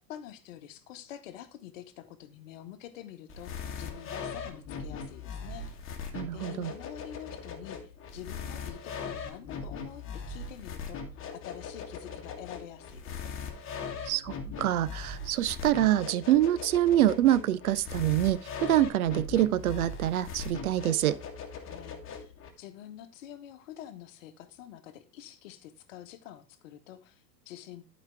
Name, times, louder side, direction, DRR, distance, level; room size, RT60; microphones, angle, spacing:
voice 1, 0.1-5.7 6.3-11.0 11.3-13.3 21.5-27.8, left 11 dB, 50° left, 1.2 m, -47 dB
sound 1, 3.3-22.5, left 5 dB, 25° left, 1.5 m, -40 dB
voice 2, 6.1-6.7 14.1-21.2, right 13 dB, 60° right, 0.6 m, -26 dB
12.0 x 5.0 x 3.5 m
figure-of-eight pair, 90°, 50 cm